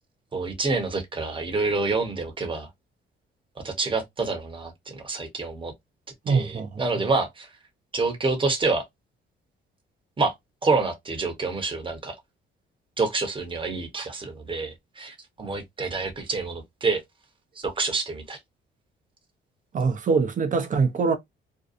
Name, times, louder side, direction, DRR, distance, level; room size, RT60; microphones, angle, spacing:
voice 1, 0.3-2.7 3.6-5.7 6.3-7.5 7.9-8.8 10.2-10.3 10.6-12.1 13.0-17.0 17.6-18.4, right 3 dB, 25° right, 0.9 m, -27 dB
voice 2, 6.3-6.8 19.7-21.2, right 4 dB, 40° right, 0.6 m, -23 dB
2.7 x 2.2 x 2.4 m
cardioid pair, 90°, 20 cm